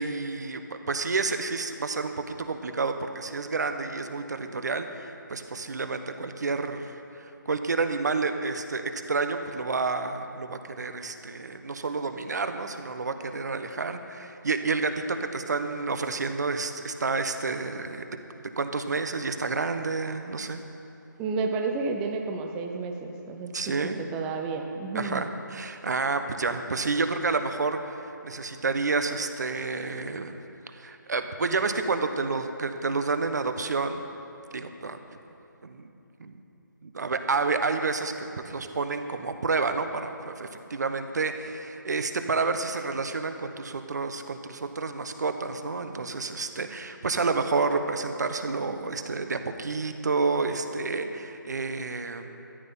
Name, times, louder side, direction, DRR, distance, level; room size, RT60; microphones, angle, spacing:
voice 1, 0.0-18.2 18.6-20.6 23.5-24.0 24.9-30.4 30.7-34.0 34.5-35.0 35.6-35.9 36.2-36.4 36.8-38.1 38.4-52.3, right 4 dB, 55° right, 8 dB, 1.1 m, -29 dB
voice 2, 21.2-23.5 23.8-25.2, right 4 dB, 5° right, 3 dB, 0.5 m, -31 dB
13.5 x 9.9 x 5.6 m, 3.0 s
figure-of-eight pair, 165°, 11 cm